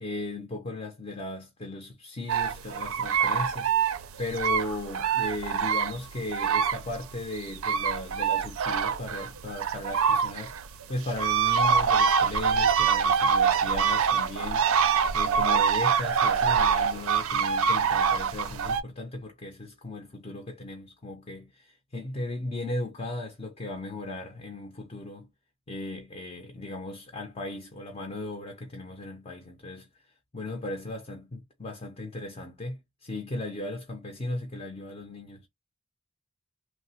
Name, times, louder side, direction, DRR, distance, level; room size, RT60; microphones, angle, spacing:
voice 1, 0.0-10.5 10.9-14.6 15.1-25.3 25.7-29.9 30.3-35.5, left 2 dB, 25° left, 0.5 m, -37 dB
sound 1, 2.3-7.0 7.3-18.8, right 6 dB, 70° right, 0.4 m, -25 dB
3.1 x 2.0 x 2.8 m
head